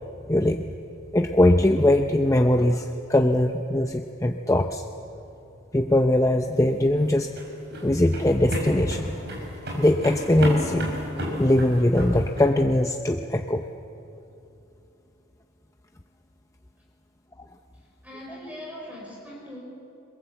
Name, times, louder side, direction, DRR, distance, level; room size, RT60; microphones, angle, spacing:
voice 1, 0.3-0.7 1.1-4.8 5.7-7.3 7.8-9.1 9.8-10.9 11.3-13.7, left 1 dB, 15° left, 4 dB, 0.6 m, -21 dB
sound 1, 6.8-12.5, equal, 55° right, 6.0 m, -32 dB
voice 2, 17.7-19.6, equal, 5° right, -3 dB, 5.5 m, -41 dB
27.0 x 21.5 x 7.9 m, 2.9 s
head